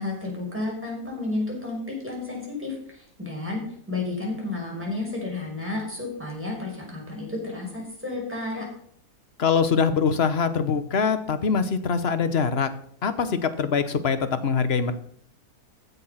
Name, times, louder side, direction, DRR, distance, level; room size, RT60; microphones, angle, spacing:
voice 1, 0.0-3.6 3.9-8.6, left 2 dB, 5° right, -2 dB, 5.1 m, -31 dB
voice 2, 9.4-12.7 13.0-14.9, left 6 dB, 45° left, 11 dB, 1.1 m, -23 dB
15.0 x 7.0 x 5.7 m, 0.63 s
omnidirectional pair, 1.8 m